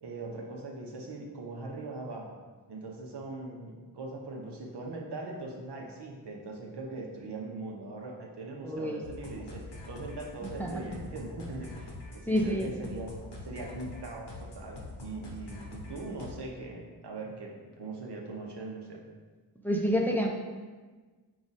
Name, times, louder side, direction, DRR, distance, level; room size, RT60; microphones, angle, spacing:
voice 1, 0.0-2.3 2.7-13.2 13.4-19.0, right 2 dB, 70° right, -1 dB, 0.8 m, -41 dB
voice 2, 8.6-9.0 10.6-10.7 12.3-12.7 19.6-20.3, equal, 5° left, 0 dB, 0.5 m, -27 dB
sound 1, 9.0-16.3, left 2 dB, 75° left, 0.9 m, -44 dB
4.9 x 2.4 x 4.0 m, 1.4 s
wide cardioid pair, 65°, 41 cm